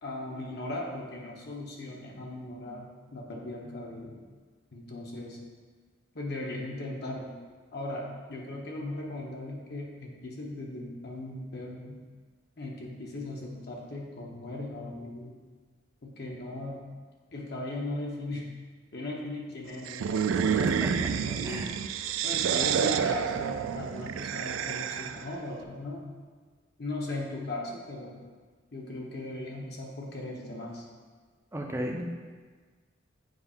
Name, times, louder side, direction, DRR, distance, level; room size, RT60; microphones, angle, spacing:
voice 1, 0.0-2.9 3.1-4.2 4.7-5.4 6.1-7.3 7.7-11.9 12.6-15.3 16.0-16.8 17.3-18.5 18.9-21.6 22.2-26.2 26.8-28.2 28.7-30.8, left 2 dB, 55° left, -2 dB, 1.0 m, -38 dB
sound 1, 19.9-25.3, right 7 dB, 80° right, 0.3 m, -29 dB
voice 2, 20.4-21.1 21.4-21.8 31.5-32.1, equal, 15° right, 1 dB, 0.6 m, -34 dB
7.8 x 2.7 x 5.5 m, 1.5 s
head